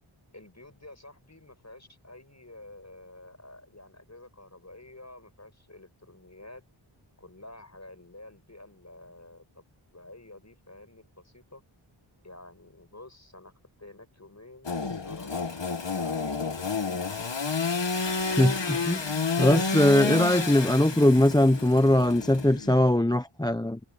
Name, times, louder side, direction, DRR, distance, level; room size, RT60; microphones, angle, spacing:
voice 1, 0.3-6.6 7.2-9.6 9.9-11.6 12.2-13.5 13.8-17.2, left 2 dB, 35° left, 7.1 m, -49 dB
Engine / Sawing, 14.6-22.9, left 4 dB, 60° left, 1.6 m, -30 dB
voice 2, 18.4-23.8, left 1 dB, 10° left, 0.7 m, -21 dB
wide cardioid pair, 55°, 49 cm